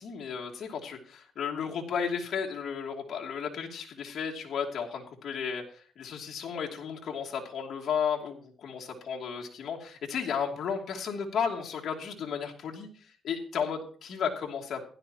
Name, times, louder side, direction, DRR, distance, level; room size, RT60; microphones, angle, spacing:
voice 1, 0.0-12.9 13.2-14.8, left 7 dB, 65° left, 0 dB, 2.7 m, -33 dB
16.0 x 12.0 x 3.0 m, 0.43 s
cardioid pair, 90°, 0 cm